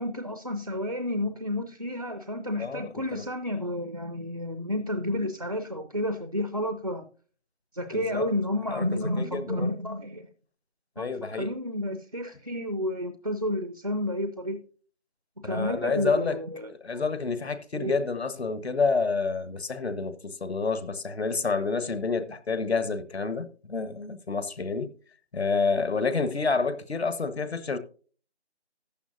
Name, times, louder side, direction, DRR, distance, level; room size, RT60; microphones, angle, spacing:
voice 1, 0.0-7.1 7.7-10.3 11.0-14.6 15.4-17.0 17.7-18.0, left 1 dB, 35° right, 0.5 m, -31 dB
voice 2, 2.6-3.2 7.9-8.3 8.7-9.7 11.0-11.5 15.4-16.4 16.8-24.9 25.3-27.8, left 4 dB, 70° left, 1.3 m, -29 dB
14.5 x 9.2 x 2.6 m
figure-of-eight pair, 175°, 34 cm